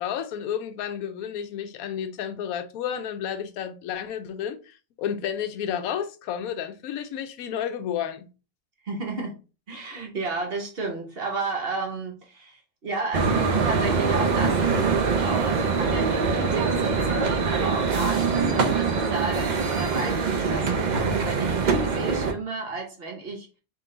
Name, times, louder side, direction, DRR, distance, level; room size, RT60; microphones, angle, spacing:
voice 1, 0.0-8.3, left 9 dB, 80° left, 1.0 m, -31 dB
voice 2, 8.8-9.4 9.7-23.5, right 3 dB, 45° right, 1.0 m, -33 dB
sound 1, 13.1-22.3, right 5 dB, 65° right, 0.4 m, -23 dB
3.8 x 2.8 x 3.7 m
omnidirectional pair, 1.5 m